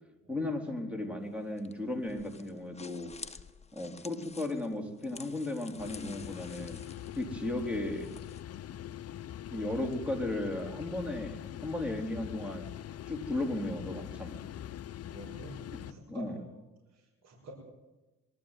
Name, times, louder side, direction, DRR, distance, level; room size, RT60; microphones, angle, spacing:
voice 1, 0.3-3.1 3.7-6.8 7.1-8.1 9.5-11.4 11.6-12.7 13.1-14.4 16.1-16.3, left 2 dB, 5° right, 3 dB, 4.3 m, -35 dB
sound 1, 1.2-8.4, left 4 dB, 20° left, 1.4 m, -51 dB
sound 2, 5.8-15.9, left 11 dB, 55° left, 0.8 m, -43 dB
voice 2, 15.1-15.6 15.9-16.6 16.9-17.5, right 2 dB, 60° right, -1 dB, 6.7 m, -49 dB
22.5 x 13.5 x 9.3 m, 1.1 s
cardioid pair, 90°, 30 cm